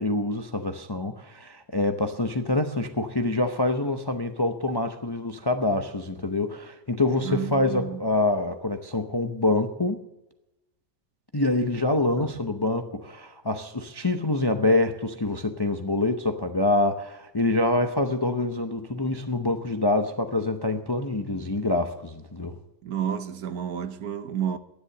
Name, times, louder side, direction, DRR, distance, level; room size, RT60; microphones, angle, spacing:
voice 1, 0.0-10.0 11.3-22.6, left 2 dB, 30° left, 0.5 m, -26 dB
voice 2, 7.2-8.0 12.2-12.3 22.8-24.6, right 9 dB, 70° right, 1.4 m, -30 dB
13.0 x 10.5 x 6.7 m
omnidirectional pair, 1.7 m